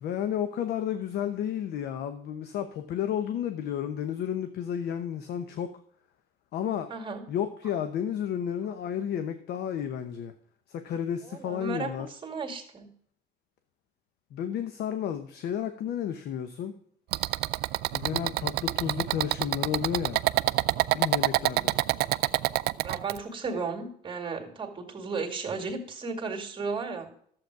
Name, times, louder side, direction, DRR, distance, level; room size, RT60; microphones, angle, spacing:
voice 1, 0.0-5.7 6.5-6.9 7.3-10.3 10.7-12.1 14.3-16.7 17.9-20.2 20.9-21.7, left 9 dB, 75° left, 9 dB, 0.9 m, -32 dB
voice 2, 6.9-7.2 8.7-8.8 11.2-12.9 22.8-27.1, right 4 dB, 30° right, 4 dB, 2.2 m, -34 dB
sound 1, 17.1-23.2, right 17 dB, 75° right, 0.4 m, -27 dB
12.0 x 7.8 x 4.7 m, 0.63 s
cardioid pair, 110°, 17 cm